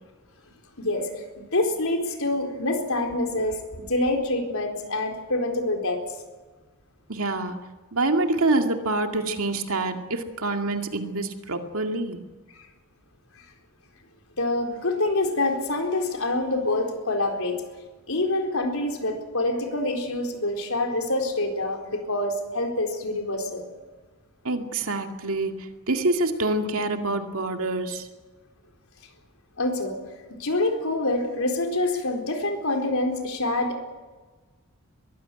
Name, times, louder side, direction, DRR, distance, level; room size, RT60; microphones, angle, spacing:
voice 1, 0.8-6.0 14.4-17.6 18.1-23.7 29.6-30.0 30.3-33.8, left 2 dB, 70° left, 3 dB, 4.2 m, -26 dB
voice 2, 7.1-7.6 7.9-12.2 24.4-28.1, right 2 dB, 75° right, 5 dB, 2.2 m, -26 dB
22.0 x 15.5 x 9.3 m, 1.3 s
head